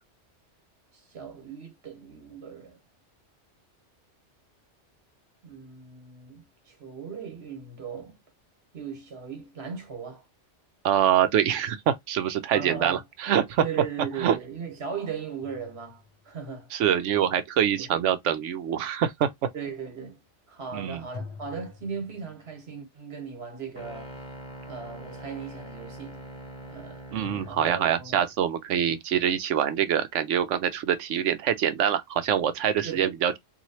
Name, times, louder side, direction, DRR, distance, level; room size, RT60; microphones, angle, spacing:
voice 1, 1.1-2.8 5.4-8.2 8.7-10.2 12.5-13.0 13.6-16.7 17.8-17.9 19.5-20.2 20.5-24.1 24.7-26.3 26.6-27.0 27.5-28.2 32.8-33.1, right 6 dB, 60° right, 1.4 m, -38 dB
voice 2, 10.8-13.6 14.2-14.4 16.7-19.3 20.7-21.0 27.1-33.4, right 9 dB, 90° right, 1.0 m, -25 dB
sound 1, 15.4-16.6 21.1-22.7 27.2-28.4, left 4 dB, 35° left, 0.7 m, -45 dB
sound 2, 23.8-27.7, right 1 dB, 5° left, 1.0 m, -43 dB
3.0 x 2.7 x 2.7 m
omnidirectional pair, 1.2 m